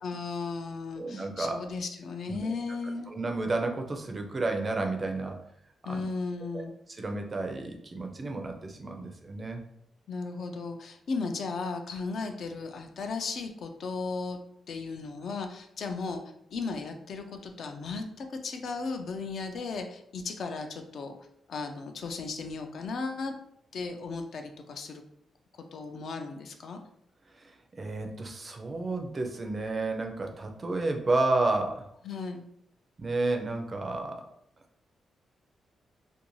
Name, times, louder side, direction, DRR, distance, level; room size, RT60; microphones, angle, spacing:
voice 1, 0.0-3.1 5.8-6.7 10.1-14.4 14.7-16.2 16.5-21.2 21.5-23.3 23.7-25.0 25.7-26.8 32.0-32.4, left 4 dB, 60° left, 5 dB, 0.3 m, -35 dB
voice 2, 1.0-1.6 2.3-2.5 3.1-5.4 5.9-6.1 6.5-6.6 6.9-9.6 27.3-31.9 33.0-34.2, right 2 dB, 25° right, 4 dB, 0.4 m, -31 dB
2.5 x 2.2 x 3.0 m, 0.73 s
wide cardioid pair, 140°, 0 cm